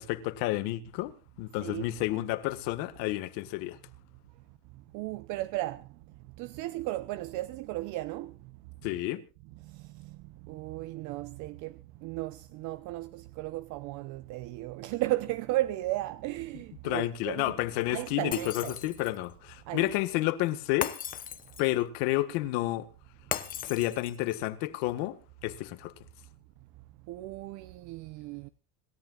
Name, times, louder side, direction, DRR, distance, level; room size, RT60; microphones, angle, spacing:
voice 1, 0.0-3.8 8.8-9.2 16.8-20.9 21.6-22.9 23.6-25.1 25.4-25.9, left 16 dB, 70° left, 1.7 m, -30 dB
voice 2, 4.9-5.9 6.4-8.4 9.6-10.2 10.5-17.5 17.9-18.7 19.7-19.9 27.1-28.5, right 17 dB, 55° right, 0.7 m, -35 dB
Shatter, 18.3-19.3 20.8-21.8 23.3-24.3, left 9 dB, 25° left, 0.9 m, -37 dB
26.5 x 14.0 x 2.4 m
cardioid pair, 165°, 35 cm